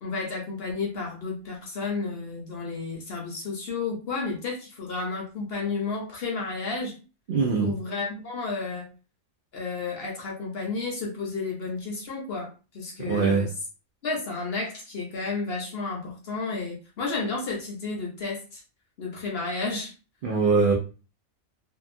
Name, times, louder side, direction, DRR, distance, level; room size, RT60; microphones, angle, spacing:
voice 1, 0.0-6.9 7.6-8.9 9.5-13.5 14.0-18.6 19.0-19.9, left 4 dB, 55° left, -1 dB, 0.8 m, -32 dB
voice 2, 7.3-7.7 13.0-13.5 20.2-20.7, right 4 dB, 80° right, 0 dB, 0.4 m, -22 dB
2.8 x 2.3 x 2.5 m, 0.34 s
omnidirectional pair, 1.5 m